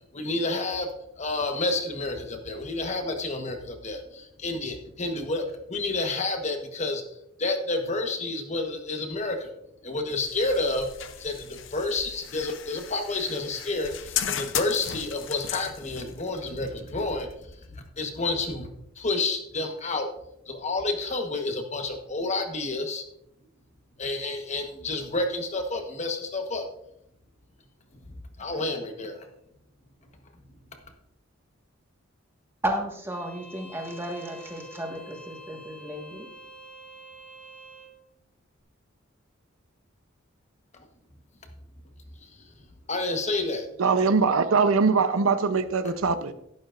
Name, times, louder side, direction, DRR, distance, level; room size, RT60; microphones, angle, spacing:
voice 1, 0.1-0.9 1.2-4.0 4.4-5.4 5.7-7.0 7.4-9.4 9.8-10.9 11.2-11.3 11.7-13.9 14.3-17.3 18.0-18.7 19.0-20.1 20.5-23.0 24.0-26.6 28.4-29.2 42.9-43.7, left 2 dB, 35° left, 1.2 m, -29 dB
sound 1, 10.1-18.0, left 9 dB, 65° left, 0.7 m, -36 dB
voice 2, 32.6-36.3, right 1 dB, 10° right, 1.5 m, -33 dB
Bowed string instrument, 33.1-37.9, equal, 10° left, 2.0 m, -47 dB
voice 3, 43.8-46.3, right 4 dB, 90° right, 0.7 m, -22 dB
12.0 x 11.5 x 2.5 m
head